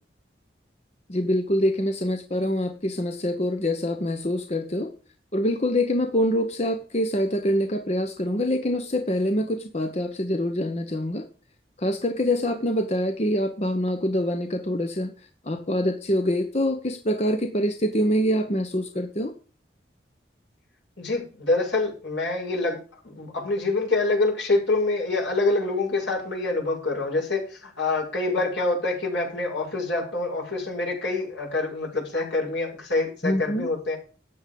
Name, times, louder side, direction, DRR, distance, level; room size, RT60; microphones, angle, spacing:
voice 1, 1.1-4.9 5.3-11.3 11.8-15.1 15.4-19.3 33.2-33.7, equal, 35° left, 7 dB, 1.1 m, -25 dB
voice 2, 21.0-22.8 23.0-34.0, left 2 dB, 80° left, -2 dB, 7.3 m, -26 dB
13.5 x 9.2 x 5.3 m, 0.38 s
head